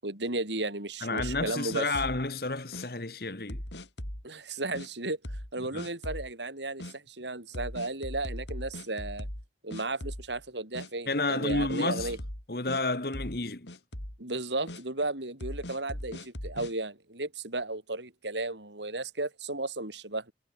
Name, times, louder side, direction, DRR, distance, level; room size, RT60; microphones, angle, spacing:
voice 1, 0.0-1.9 4.2-5.2 5.5-9.3 9.6-12.2 14.2-20.3, right 2 dB, 90° right, 6.8 m, -34 dB
voice 2, 1.0-3.6 5.7-5.8 11.1-12.2 12.5-13.7, left 2 dB, 60° left, 1.8 m, -30 dB
sound 1, 1.2-2.3 2.7-2.9 3.5-4.2 4.7-4.9 5.2-5.5 5.8-6.3 6.8-6.9 7.5-9.5 9.7-10.4 10.7-10.9 11.5-12.8 13.1-13.4 13.7-14.2 14.7-14.8 15.4-16.7, left 1 dB, 85° left, 5.5 m, -39 dB
head